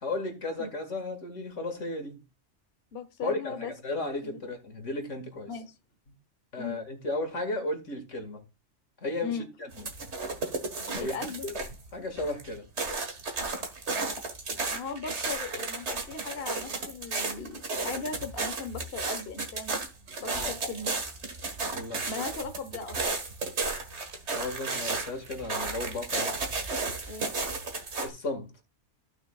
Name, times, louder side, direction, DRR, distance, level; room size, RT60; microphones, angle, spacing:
voice 1, 0.0-2.2 3.2-5.5 6.5-8.4 9.0-9.4 9.8-9.9 10.9-11.2 11.4-11.6 11.9-12.7 20.3-20.5 21.7-22.2 24.3-26.4 28.0-28.5, left 2 dB, 80° left, 2.3 m, -34 dB
voice 2, 2.9-3.7 4.2-4.4 5.5-5.7 6.6-6.8 9.2-9.5 11.0-11.5 14.7-19.7 20.2-21.0 22.1-23.0 27.1-27.3, left 4 dB, 55° left, 1.1 m, -38 dB
sound 1, 9.7-11.9 12.2-28.1, right 3 dB, 65° right, 1.9 m, -33 dB
15.0 x 6.1 x 2.4 m
omnidirectional pair, 1.3 m